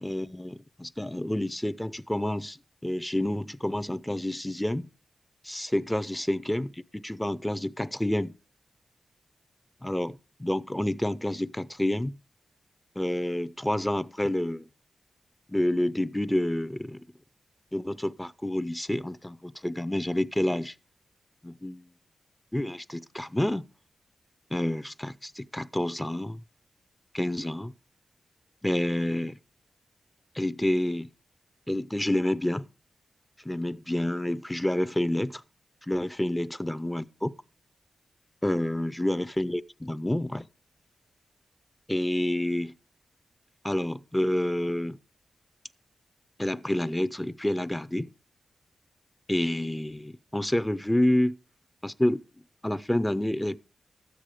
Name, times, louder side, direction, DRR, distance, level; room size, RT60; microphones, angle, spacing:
voice 1, 0.0-2.6 2.8-4.9 5.4-8.3 9.8-12.2 13.0-14.7 15.5-17.0 17.7-20.7 21.4-21.8 22.5-23.7 24.5-26.4 27.1-27.7 28.6-29.4 30.3-31.1 31.7-32.6 33.4-35.4 35.9-37.3 38.4-40.5 41.9-42.7 43.6-45.0 46.4-48.1 49.3-51.4 51.8-52.2 52.6-53.6, left 1 dB, 10° left, 0.5 m, -28 dB
13.0 x 9.2 x 4.9 m
cardioid pair, 65°, 0 cm